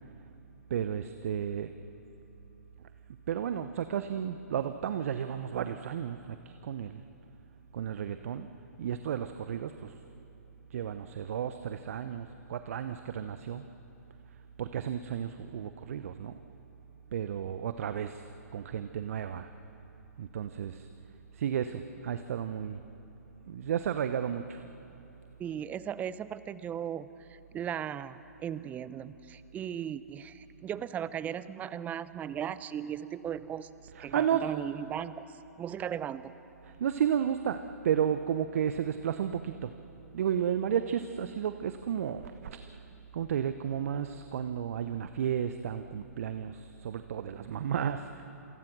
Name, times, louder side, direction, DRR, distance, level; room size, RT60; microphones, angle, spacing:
voice 1, 0.7-1.7 3.3-7.0 7.7-8.5 8.8-9.9 10.7-13.6 14.6-16.4 17.1-18.2 18.5-19.5 20.2-20.9 21.3-22.8 23.5-24.6 34.0-34.4 36.8-39.7 40.1-42.6 43.1-48.2, right 9 dB, 60° right, 9 dB, 0.9 m, -33 dB
voice 2, 25.4-33.7 34.0-35.3 35.6-36.3, right 9 dB, 15° right, 15 dB, 0.7 m, -37 dB
27.5 x 24.0 x 6.2 m, 3.0 s
hypercardioid pair, 125°, 9 cm